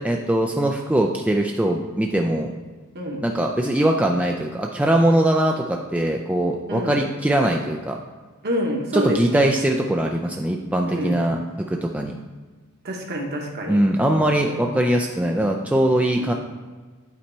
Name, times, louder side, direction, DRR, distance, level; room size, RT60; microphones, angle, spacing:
voice 1, 0.0-2.5 3.2-8.0 8.9-12.1 13.7-16.3, right 1 dB, 5° right, 1 dB, 0.3 m, -21 dB
voice 2, 6.7-7.0 8.4-9.5 10.9-11.2 12.8-13.8 14.4-14.6 16.2-16.3, equal, 50° right, 1 dB, 1.2 m, -27 dB
8.6 x 4.2 x 4.4 m, 1.4 s
head